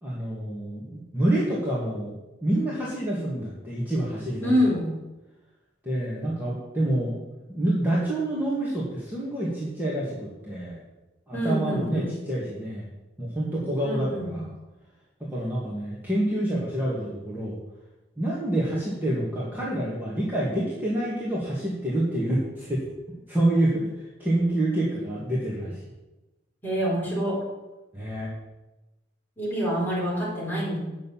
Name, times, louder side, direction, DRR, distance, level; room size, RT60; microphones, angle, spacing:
voice 1, 0.0-2.1 2.4-4.8 5.8-7.1 7.5-10.8 11.3-12.9 13.2-14.5 15.3-17.6 18.2-22.8 23.3-23.9 24.2-25.8 27.9-28.3, right 1 dB, 10° right, -7 dB, 2.1 m, -27 dB
voice 2, 4.4-4.8 11.3-12.1 13.8-14.3 26.6-27.4 29.4-30.8, equal, 10° left, -6 dB, 4.6 m, -26 dB
9.2 x 6.7 x 7.4 m, 1.1 s
head